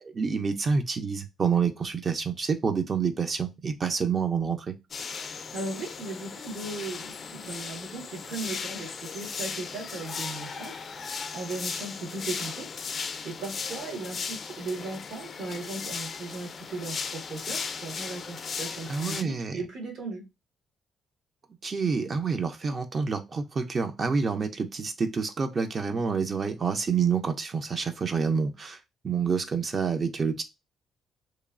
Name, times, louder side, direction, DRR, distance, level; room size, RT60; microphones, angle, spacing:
voice 1, 0.0-4.7 18.9-19.6 21.6-28.8 29.0-30.4, right 5 dB, 40° right, 0.4 m, -28 dB
sound 1, 4.9-19.2, left 5 dB, 45° left, 0.3 m, -37 dB
voice 2, 5.5-12.7 13.2-20.3, right 3 dB, 75° right, 1.4 m, -37 dB
3.0 x 2.3 x 2.4 m
cardioid pair, 90°, 0 cm